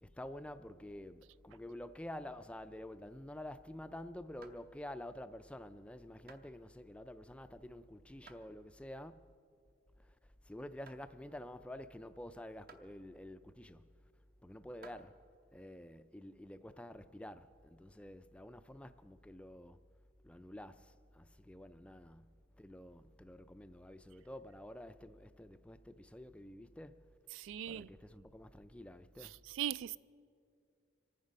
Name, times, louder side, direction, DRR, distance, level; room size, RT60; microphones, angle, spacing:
voice 1, 0.0-9.3 10.0-10.2 10.4-13.9 14.4-15.2 15.5-19.8 20.2-27.1 27.7-29.4, left 1 dB, 5° left, 0.3 m, -49 dB
sound 1, 4.4-5.0 5.5-5.8 6.3-6.5 7.2-7.7 8.3-8.5 9.0-9.1 9.7-9.9 10.3-10.5 10.9-11.1 11.8-11.9 12.7-12.9 13.7-13.8 14.6-15.1, right 4 dB, 50° right, 0.9 m, -59 dB
voice 2, 27.3-27.9 29.2-30.0, right 10 dB, 85° right, 0.3 m, -40 dB
26.0 x 9.5 x 5.1 m
head